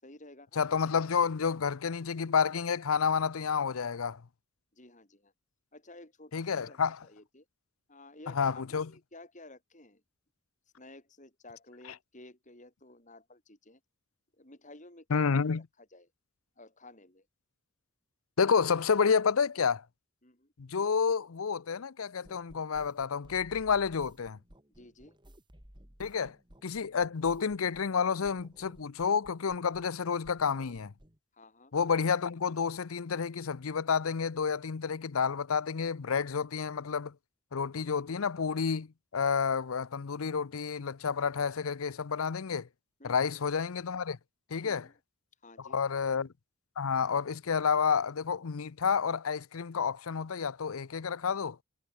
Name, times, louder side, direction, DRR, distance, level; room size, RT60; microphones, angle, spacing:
voice 1, 0.0-0.6 4.7-5.3 5.7-7.4 7.9-10.0 10.8-13.8 14.4-16.1 16.6-17.3 20.2-20.5 24.7-25.2 31.3-31.7 43.0-43.4 44.6-45.0 45.4-45.8, left 2 dB, 35° left, 6.2 m, -53 dB
voice 2, 0.6-4.2 6.3-7.0 8.3-8.9 15.1-15.6 18.4-19.8 20.6-24.4 26.0-26.4 26.6-30.9 31.7-37.1 37.5-38.9 39.1-42.7 43.0-44.2 44.5-44.9 45.7-46.3 46.8-51.6, left 6 dB, 85° left, 0.6 m, -30 dB
sound 1, 22.2-28.0 28.2-30.0 30.2-31.2, equal, 20° right, 3.5 m, -57 dB
head